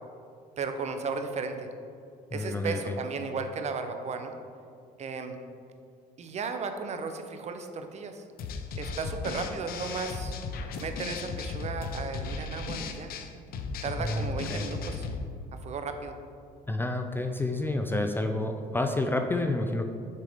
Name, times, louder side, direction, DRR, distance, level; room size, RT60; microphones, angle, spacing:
voice 1, 0.6-1.7 2.3-4.3 5.0-5.4 6.2-8.2 8.7-10.4 10.8-13.1 13.8-15.1 15.6-16.2, right 4 dB, 40° right, 7 dB, 0.6 m, -35 dB
voice 2, 2.3-3.0 14.0-14.7 16.7-19.9, left 2 dB, 15° left, 5 dB, 0.3 m, -29 dB
sound 1, 8.4-15.2, left 4 dB, 60° left, 0.6 m, -36 dB
6.5 x 4.9 x 3.6 m, 2.4 s
cardioid pair, 110°, 17 cm